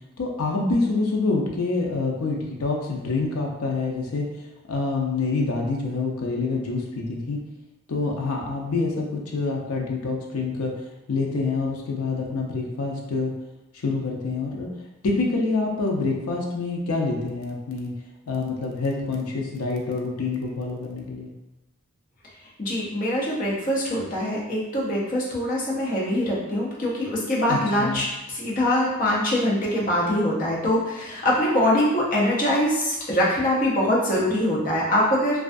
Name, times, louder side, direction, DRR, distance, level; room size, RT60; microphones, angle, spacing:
voice 1, 0.2-4.3 4.7-7.4 7.9-10.7 11.1-13.3 13.8-14.7 15.0-17.9 18.3-21.3 27.5-28.0, left 3 dB, 80° left, 0 dB, 0.5 m, -26 dB
voice 2, 22.6-35.4, left 1 dB, 35° left, -5 dB, 0.6 m, -23 dB
2.3 x 2.2 x 2.5 m, 1.0 s
head